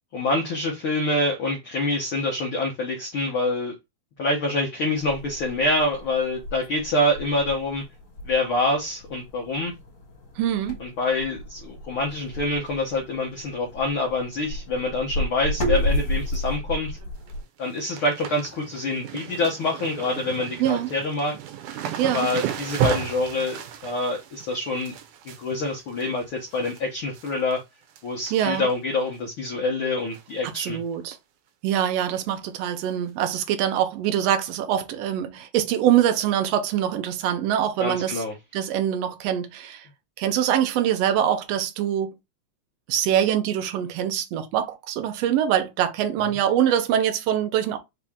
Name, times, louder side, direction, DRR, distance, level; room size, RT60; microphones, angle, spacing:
voice 1, 0.1-3.7 4.2-7.8 8.2-9.7 10.8-17.0 17.6-21.3 22.1-24.9 25.2-27.6 28.0-30.8 37.8-38.3, left 2 dB, 65° left, 1.3 m, -26 dB
sound 1, 5.0-17.4, equal, 40° left, 2.4 m, -32 dB
voice 2, 10.4-10.8 20.6-20.9 22.0-22.3 28.3-28.7 30.4-31.2 31.6-38.2 38.5-39.8 40.2-42.2 42.9-47.8, right 10 dB, 70° right, 1.6 m, -24 dB
sound 2, 17.0-17.3 17.6-26.8 27.1-27.6 27.9-28.7 29.1-29.2 30.1-30.4 30.6-30.7 31.1-31.2 32.8-32.9 33.7-33.8, right 10 dB, 90° right, 2.2 m, -34 dB
5.0 x 2.8 x 3.5 m
omnidirectional pair, 3.5 m